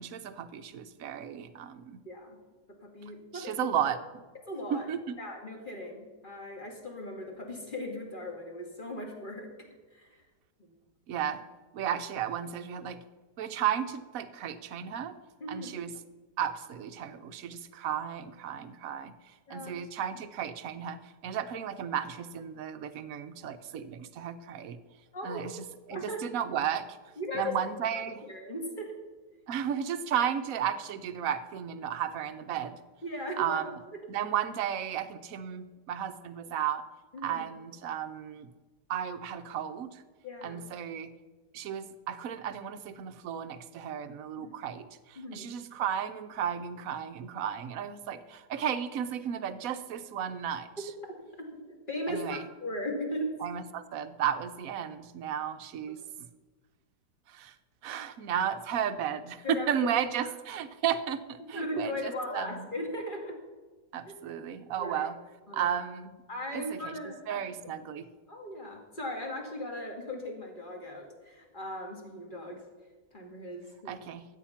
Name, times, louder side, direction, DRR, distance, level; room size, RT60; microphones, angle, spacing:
voice 1, 0.0-2.0 3.3-4.2 4.7-5.1 11.1-11.4 11.7-13.0 13.4-15.2 15.5-15.9 16.4-24.8 25.2-27.0 27.3-28.2 29.5-32.8 33.4-33.7 34.1-36.8 37.2-38.5 38.9-40.0 40.4-41.1 41.5-50.9 52.1-52.5 53.4-56.3 57.3-57.5 57.8-62.7 63.9-65.2 65.5-66.1 66.5-67.0 67.3-68.1 73.9-74.2, right 9 dB, 60° right, 11 dB, 1.1 m, -34 dB
voice 2, 2.1-2.4 2.8-3.5 4.5-4.9 5.2-9.5 9.9-10.2 10.6-10.7 15.4-15.7 19.5-19.7 25.1-25.4 25.9-26.2 27.2-27.5 28.2-29.0 33.0-33.6 37.1-37.4 40.2-40.6 44.4-44.5 45.2-45.5 51.4-53.3 59.4-59.8 60.2-60.3 61.5-63.3 64.1-64.2 64.8-65.1 65.5-65.8 66.3-67.4 68.3-72.6 73.1-74.0, left 1 dB, 30° left, 1 dB, 2.3 m, -38 dB
13.5 x 8.9 x 5.8 m, 1.3 s
omnidirectional pair, 1.9 m